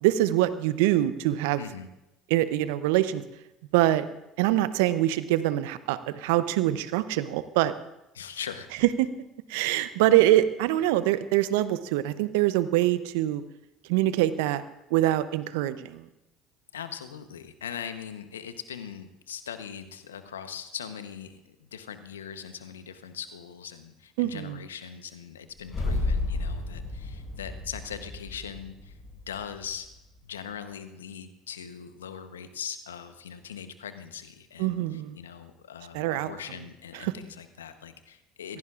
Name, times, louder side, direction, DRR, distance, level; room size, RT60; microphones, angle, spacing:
voice 1, 0.0-1.6 2.3-3.2 3.7-4.0 4.4-7.7 9.0-9.1 9.5-13.4 13.9-14.6 14.9-16.0 24.2-24.6 34.6-35.2 35.9-36.3 37.0-37.1, right 14 dB, 70° right, 14 dB, 0.7 m, -24 dB
voice 2, 1.6-1.9 8.1-8.8 16.7-29.0 29.3-29.9 30.2-38.6, left 8 dB, 85° left, 10 dB, 0.9 m, -40 dB
sound 1, 25.6-29.9, left 2 dB, 30° left, 6.3 m, -32 dB
24.5 x 16.5 x 2.5 m, 0.92 s
hypercardioid pair, 65°, 0 cm